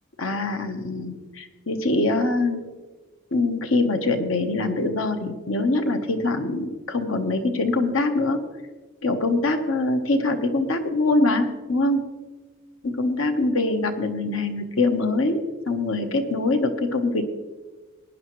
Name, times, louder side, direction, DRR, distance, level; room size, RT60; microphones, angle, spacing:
voice 1, 0.2-2.6 3.3-8.4 9.0-12.1 12.8-17.2, left 2 dB, 70° left, 8 dB, 1.1 m, -23 dB
18.5 x 10.0 x 3.1 m, 1.3 s
head